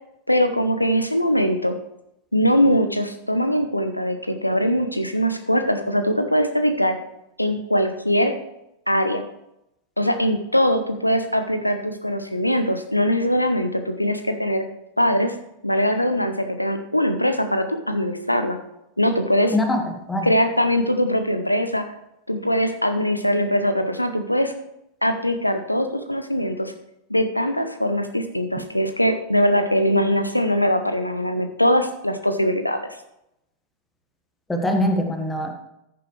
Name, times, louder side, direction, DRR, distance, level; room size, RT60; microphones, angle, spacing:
voice 1, 0.3-1.8 2.3-7.0 7.4-8.3 8.9-9.2 10.0-14.6 15.0-15.3 15.6-18.6 19.0-19.6 20.2-21.9 22.3-24.5 25.0-26.7 27.1-32.8, equal, 85° left, 8 dB, 0.7 m, -21 dB
voice 2, 19.5-20.3 34.5-35.5, left 1 dB, 10° left, 4 dB, 1.6 m, -23 dB
14.0 x 7.0 x 3.3 m, 0.84 s
figure-of-eight pair, 90°, 0 cm